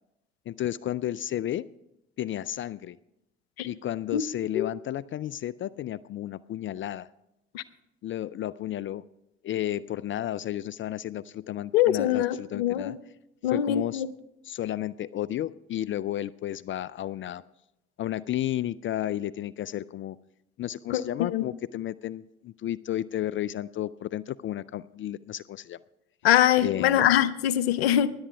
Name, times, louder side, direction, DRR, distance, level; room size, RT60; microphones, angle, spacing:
voice 1, 0.5-1.7 2.2-3.0 3.6-7.1 8.0-9.0 9.4-13.0 13.5-14.0 14.4-17.4 18.0-20.2 20.6-25.8 26.6-27.1, left 12 dB, 40° left, 0.4 m, -32 dB
voice 2, 11.7-12.9 13.4-14.1 20.9-21.0 21.3-21.5 26.2-28.1, left 11 dB, 90° left, 0.6 m, -23 dB
17.0 x 11.0 x 3.4 m
hypercardioid pair, 55°, 30 cm